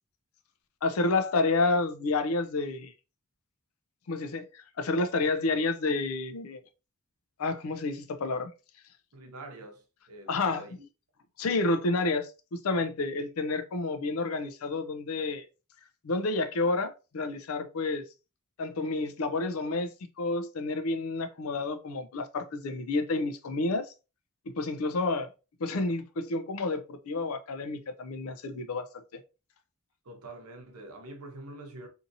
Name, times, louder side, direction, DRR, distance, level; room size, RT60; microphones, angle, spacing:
voice 1, 0.8-2.9 4.1-6.6 7.4-8.5 10.3-10.6 11.4-15.4 16.0-18.0 18.6-19.9 20.2-23.9 24.5-25.3 25.6-28.9, left 3 dB, 70° left, 0.5 m, -29 dB
voice 2, 9.1-10.9 30.0-31.9, right 2 dB, 90° right, 0.7 m, -45 dB
2.7 x 2.6 x 2.6 m
head